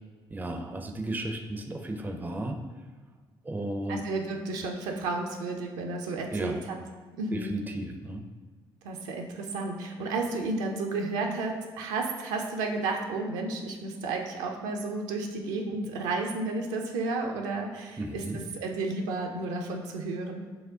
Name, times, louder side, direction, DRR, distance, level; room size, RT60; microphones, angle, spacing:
voice 1, 0.3-2.6 3.4-4.1 6.3-6.6 7.3-8.2 18.0-18.4, right 1 dB, 15° right, 4 dB, 0.5 m, -34 dB
voice 2, 3.9-6.8 7.1-7.5 8.8-18.2 18.6-20.5, right 3 dB, 70° right, 2 dB, 0.5 m, -32 dB
4.8 x 2.1 x 3.7 m, 1.4 s
figure-of-eight pair, 45°, 13 cm